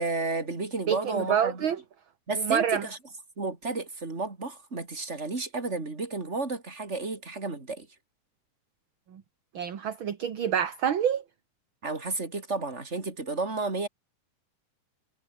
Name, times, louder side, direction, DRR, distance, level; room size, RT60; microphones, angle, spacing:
voice 1, 0.0-1.6 2.3-3.0 3.4-7.9 11.8-13.9, right 3 dB, 20° right, 3.9 m, -32 dB
voice 2, 0.9-1.8 2.4-2.9 9.1-9.2 9.5-11.2, right 8 dB, 45° right, 1.9 m, -27 dB
omnidirectional pair, 3.8 m